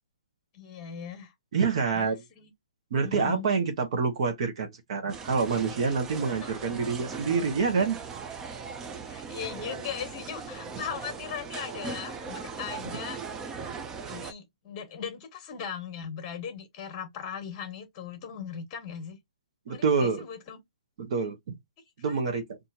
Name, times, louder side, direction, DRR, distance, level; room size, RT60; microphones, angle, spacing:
voice 1, 0.5-1.3 1.9-2.5 3.0-3.5 6.4-6.5 9.0-13.2 14.1-19.2 19.7-20.6 22.0-22.2, left 7 dB, 25° left, 1.3 m, -39 dB
voice 2, 1.5-2.2 2.9-8.0 19.7-20.2 21.0-21.6 22.0-22.6, right 5 dB, 50° right, 0.9 m, -27 dB
sound 1, 5.1-14.3, right 5 dB, 15° right, 0.4 m, -39 dB
4.2 x 2.6 x 2.7 m
hypercardioid pair, 155°, 4 cm